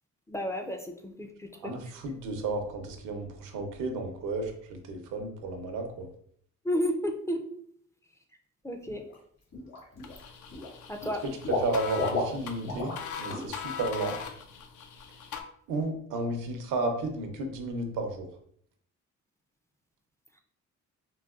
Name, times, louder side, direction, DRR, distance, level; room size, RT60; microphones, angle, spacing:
voice 1, 0.3-1.8 6.6-7.4 8.6-9.0 10.9-11.2, equal, 10° left, 4 dB, 0.3 m, -32 dB
voice 2, 1.6-6.1 11.5-12.9 13.2-14.2 15.7-18.3, right 2 dB, 85° right, 4 dB, 0.7 m, -33 dB
Water / Liquid, 8.9-9.2 9.5-10.2 10.5-13.0 13.3-13.5 13.9-14.0, left 2 dB, 60° left, 1.5 m, -33 dB
sound 1, 10.0-15.4, left 7 dB, 80° left, 0.5 m, -41 dB
3.9 x 2.1 x 2.3 m, 0.64 s
cardioid pair, 90°, 30 cm